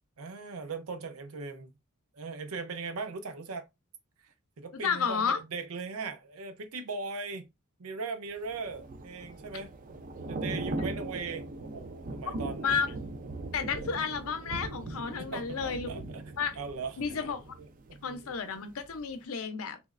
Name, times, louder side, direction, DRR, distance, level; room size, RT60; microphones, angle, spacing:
voice 1, 0.2-1.7 2.1-3.7 4.2-7.5 7.8-9.7 10.3-12.7 15.2-16.2 16.6-17.2 17.6-18.3, right 4 dB, 85° right, 0.6 m, -39 dB
voice 2, 4.8-5.4 12.6-12.9 13.5-15.9 16.4-16.6 17.0-17.4 18.0-19.8, left 6 dB, 75° left, 0.6 m, -31 dB
Thunder / Rain, 8.4-18.4 18.7-19.0, right 2 dB, 40° right, 0.4 m, -39 dB
3.3 x 3.0 x 2.4 m
head